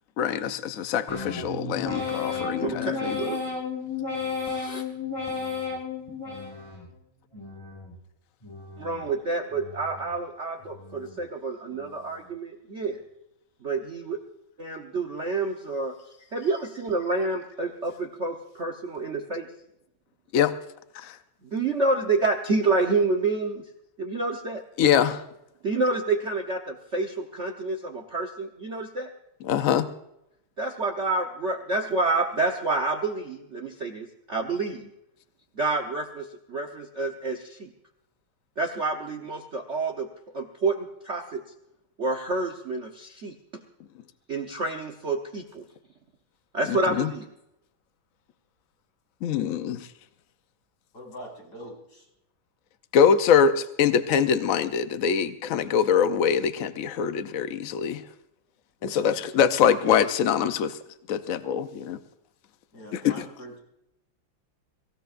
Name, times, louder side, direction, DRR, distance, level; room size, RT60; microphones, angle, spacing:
voice 1, 0.2-3.2 20.3-20.5 20.9-21.2 24.8-25.2 29.4-29.9 46.7-47.1 49.2-49.9 52.9-58.0 58.8-60.8 61.1-62.0 62.9-63.2, left 7 dB, 85° left, 10 dB, 0.7 m, -23 dB
sound 1, 1.1-6.9 7.3-8.0 8.4-9.1 9.5-10.2 10.6-11.2 11.7-12.2, left 5 dB, 15° left, 5.8 m, -33 dB
voice 2, 2.6-3.4 4.4-4.8 8.8-13.0 13.6-14.2 14.6-15.9 16.3-19.5 21.5-23.6 24.0-24.6 25.6-29.1 30.6-34.9 35.6-37.7 38.6-40.1 40.3-41.4 42.0-43.3 44.3-45.6 46.5-47.3, right 3 dB, 45° right, 4 dB, 1.0 m, -28 dB
voice 3, 50.9-52.1 58.8-59.0 62.7-63.6, equal, 45° left, -2 dB, 5.8 m, -43 dB
24.0 x 16.0 x 2.5 m, 0.83 s
omnidirectional pair, 2.4 m